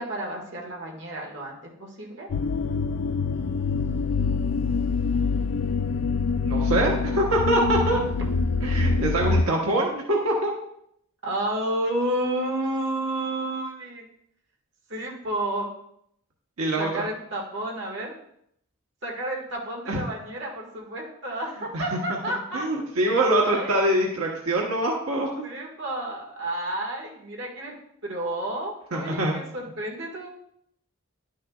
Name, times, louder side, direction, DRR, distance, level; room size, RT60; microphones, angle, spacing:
voice 1, 0.0-2.3 11.2-14.1 14.9-15.7 16.8-18.1 19.0-22.6 23.4-23.7 25.4-27.7 28.0-30.3, right 1 dB, 55° right, -2 dB, 1.7 m, -31 dB
sound 1, 2.3-9.4, left 4 dB, 60° left, 0.3 m, -25 dB
voice 2, 6.4-8.0 8.6-10.5 16.6-17.0 19.9-20.0 21.7-21.8 22.5-25.4 28.9-29.3, right 1 dB, 85° right, -1 dB, 1.1 m, -24 dB
10.5 x 6.5 x 2.4 m, 0.72 s
head